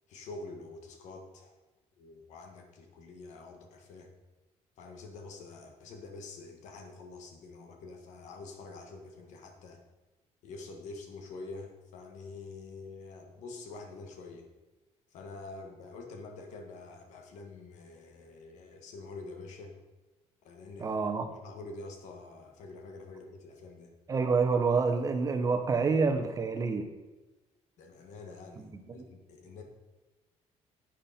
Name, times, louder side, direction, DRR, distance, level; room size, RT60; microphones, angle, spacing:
voice 1, 0.1-1.5 2.0-4.1 4.8-9.8 10.4-14.5 15.1-19.8 20.4-20.9 21.3-23.9 27.8-29.6, left 3 dB, 85° left, 4 dB, 1.8 m, -46 dB
voice 2, 20.8-21.3 24.1-26.9 28.6-29.1, right 4 dB, 30° right, 7 dB, 0.9 m, -28 dB
11.0 x 8.8 x 4.4 m, 1.1 s
cardioid pair, 160°, 12 cm